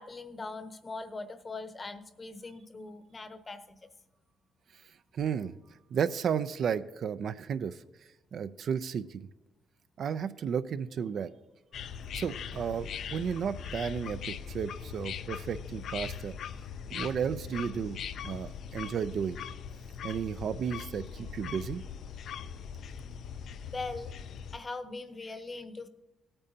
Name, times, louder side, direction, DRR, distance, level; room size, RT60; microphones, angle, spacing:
voice 1, 0.0-3.8 23.6-24.1 24.5-25.9, left 3 dB, 30° left, 10 dB, 0.8 m, -41 dB
voice 2, 5.1-5.5 5.9-7.8 8.3-9.2 10.0-11.3 12.1-16.4 16.9-18.0 18.2-19.4 20.0-21.8, right 7 dB, 60° right, 12 dB, 0.4 m, -33 dB
sound 1, 11.7-24.6, left 7 dB, 70° left, 0.4 m, -41 dB
17.0 x 8.8 x 2.8 m, 1.1 s
cardioid pair, 90°, 0 cm